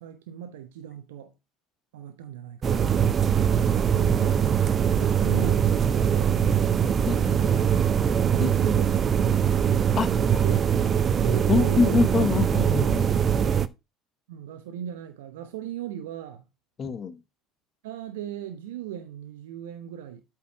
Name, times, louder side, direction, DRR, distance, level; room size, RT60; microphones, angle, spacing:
voice 1, 0.0-1.3 1.9-3.1 3.9-4.6 5.0-7.6 8.3-9.1 10.4-10.6 11.2-12.1 14.3-16.5 17.8-20.2, right 9 dB, 75° right, 0.9 m, -38 dB
sound 1, 2.6-13.7, right 8 dB, 40° right, 0.6 m, -22 dB
voice 2, 3.9-4.3 7.1-7.4 8.4-8.5 10.0-10.4 11.5-13.4 16.8-17.2, left 5 dB, 40° left, 0.9 m, -26 dB
8.4 x 4.6 x 4.7 m
hypercardioid pair, 65°, 0 cm